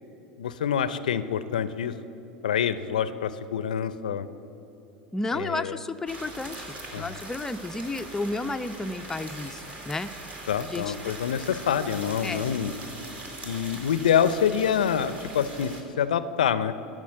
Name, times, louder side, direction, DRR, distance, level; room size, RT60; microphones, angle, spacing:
voice 1, 0.4-1.9 2.4-4.3 5.3-5.8 6.9-7.1 10.5-12.7 13.4-16.7, left 8 dB, 75° left, 15 dB, 0.5 m, -26 dB
voice 2, 5.1-10.3 10.6-11.0 12.2-12.5, left 2 dB, 10° left, 7 dB, 0.4 m, -32 dB
sound 1, 6.1-15.8, right 2 dB, 35° right, 2.0 m, -41 dB
12.5 x 6.2 x 8.6 m, 3.0 s
hypercardioid pair, 85°, 4 cm